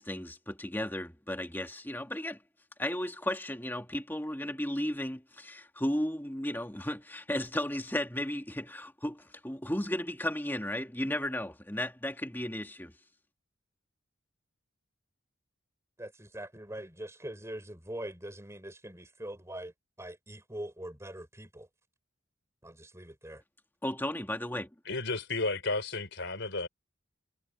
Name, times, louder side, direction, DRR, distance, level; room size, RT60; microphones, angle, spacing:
voice 1, 0.0-2.4 2.8-12.9 23.8-24.7, left 1 dB, 10° left, 2.3 m, -34 dB
voice 2, 16.0-19.7 20.0-21.7 22.6-23.4, right 1 dB, 15° right, 4.9 m, -43 dB
voice 3, 24.8-26.7, left 3 dB, 60° left, 5.0 m, -32 dB
head